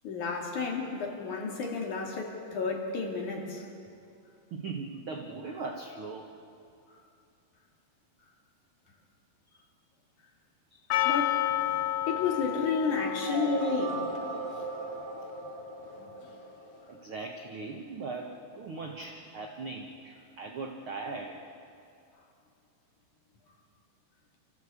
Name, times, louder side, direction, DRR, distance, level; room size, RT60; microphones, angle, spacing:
voice 1, 0.0-3.7 11.0-11.4 12.1-14.0 16.0-16.1, left 4 dB, 55° left, 0 dB, 3.5 m, -31 dB
voice 2, 4.5-6.3 10.7-10.8 16.9-21.4, right 3 dB, 75° right, 2 dB, 1.2 m, -39 dB
Percussion, 10.9-15.9, left 14 dB, 75° left, 2.6 m, -32 dB
sound 1, 13.2-17.1, right 6 dB, 50° right, 1.8 m, -38 dB
28.0 x 14.5 x 8.4 m, 2.5 s
omnidirectional pair, 4.4 m